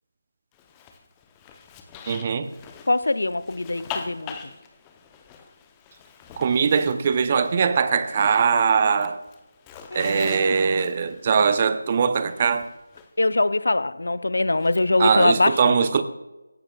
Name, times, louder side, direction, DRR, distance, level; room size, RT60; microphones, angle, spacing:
Zipper (clothing), 0.5-8.4 8.7-13.1 14.5-15.4, left 6 dB, 15° left, 0.7 m, -43 dB
voice 1, 2.1-2.5 6.4-9.2 9.9-12.7 15.0-16.0, right 6 dB, 30° right, 0.7 m, -21 dB
voice 2, 2.9-4.3 9.9-10.7 13.2-15.8, left 2 dB, 65° left, 0.6 m, -23 dB
16.5 x 11.5 x 2.3 m
figure-of-eight pair, 160°, 0 cm